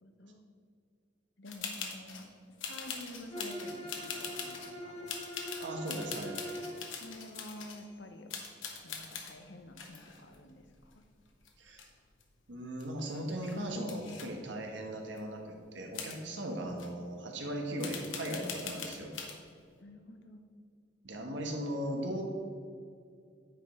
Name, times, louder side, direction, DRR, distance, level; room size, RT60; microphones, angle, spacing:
voice 1, 0.0-0.4 1.4-5.1 7.0-8.3 8.8-11.0 19.8-20.4, left 1 dB, 65° left, 7 dB, 0.8 m, -49 dB
sound 1, 1.5-2.3 2.6-4.7 5.1-7.9 8.3-9.3 9.8-11.2 11.5-12.2 12.5-12.6 12.8-14.3 15.2-15.3 15.9-16.2 16.8-16.9 17.8-19.4, left 6 dB, 80° left, 1.1 m, -42 dB
Bowed string instrument, 3.3-6.8, equal, 30° left, 2.0 m, -43 dB
voice 2, 5.6-6.4 11.6-11.8 12.5-19.1 21.0-22.2, right 1 dB, 70° right, 2 dB, 1.3 m, -38 dB
9.2 x 5.2 x 4.4 m, 2.3 s
head